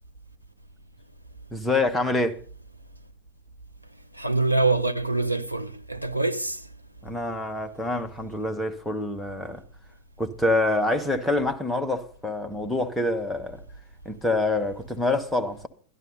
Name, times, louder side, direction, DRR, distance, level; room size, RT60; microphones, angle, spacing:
voice 1, 1.5-2.4 7.0-9.6 10.2-13.6 14.0-15.7, left 2 dB, ahead, 1.1 m, -26 dB
voice 2, 4.2-6.6, right 3 dB, 90° right, 0.8 m, -25 dB
12.5 x 11.0 x 5.3 m
figure-of-eight pair, 90°, 0 cm